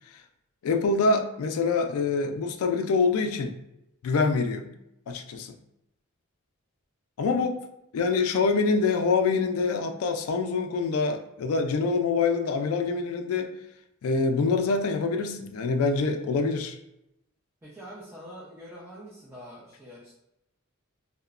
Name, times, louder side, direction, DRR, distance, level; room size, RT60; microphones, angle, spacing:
voice 1, 0.6-3.6 4.0-4.7 5.1-5.5 7.2-7.6 7.9-13.5 14.0-16.8, left 4 dB, 85° left, 6 dB, 0.3 m, -25 dB
voice 2, 17.6-20.1, equal, 10° right, -7 dB, 0.5 m, -45 dB
2.9 x 2.1 x 2.4 m, 0.85 s
head